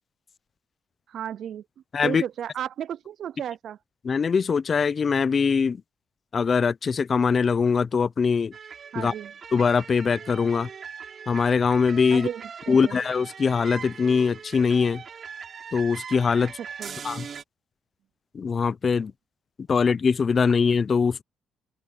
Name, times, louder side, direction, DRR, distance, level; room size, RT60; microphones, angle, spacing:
voice 1, 1.1-1.6 2.0-3.8 8.9-9.3 12.1-13.0 16.8-17.0, right 9 dB, 65° right, 0.4 m, -34 dB
voice 2, 1.9-2.2 4.0-5.8 6.3-8.5 8.9-9.1 9.5-10.7 11.3-12.3 12.7-15.0 15.7-16.5 17.0-17.3 18.3-19.1 19.7-21.2, left 5 dB, 40° left, 0.5 m, -22 dB
sound 1, 8.5-17.4, right 6 dB, 50° right, 4.6 m, -41 dB
open air
cardioid pair, 90°, 0 cm